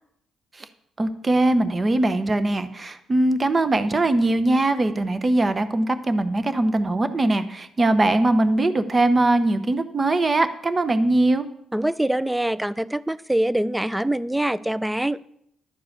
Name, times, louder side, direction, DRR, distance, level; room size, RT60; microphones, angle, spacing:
voice 1, 1.0-11.5, right 2 dB, 30° right, 11 dB, 0.8 m, -21 dB
voice 2, 11.7-15.2, right 1 dB, 5° right, 17 dB, 0.4 m, -24 dB
12.0 x 4.7 x 8.0 m, 0.71 s
cardioid pair, 90°, 0 cm